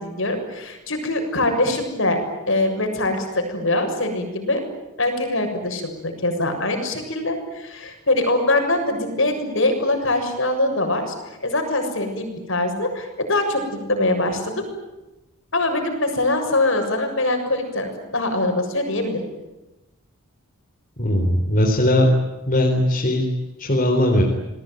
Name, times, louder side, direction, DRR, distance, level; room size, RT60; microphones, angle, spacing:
voice 1, 0.0-2.2 2.5-4.6 5.0-11.1 11.4-14.7 15.5-19.2, left 2 dB, 60° left, 5 dB, 7.1 m, -23 dB
voice 2, 21.0-22.1 22.5-23.2 23.6-24.2, left 1 dB, 35° left, 0 dB, 4.2 m, -19 dB
29.0 x 21.5 x 9.3 m, 1.0 s
head